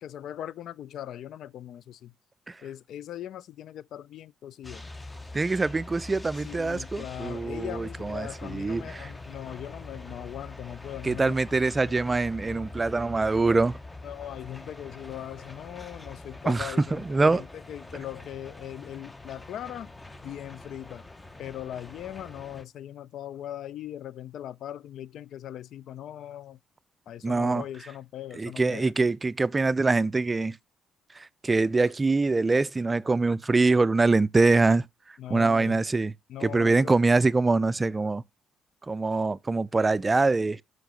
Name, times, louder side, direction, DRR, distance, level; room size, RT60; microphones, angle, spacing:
voice 1, 0.0-2.1 2.6-4.8 6.4-11.4 11.9-12.0 14.0-19.9 20.2-21.0 21.4-26.6 27.1-28.9 35.2-35.8 36.3-36.9, left 11 dB, 75° left, 0.3 m, -40 dB
sound 1, 4.6-22.6, left 2 dB, 20° left, 0.7 m, -44 dB
voice 2, 5.3-9.1 11.0-13.8 16.4-17.4 27.2-27.6 28.3-30.6 31.2-34.8 35.3-36.1 36.4-38.2 38.9-40.6, right 3 dB, 25° right, 0.3 m, -24 dB
6.4 x 4.7 x 5.1 m
cardioid pair, 90°, 0 cm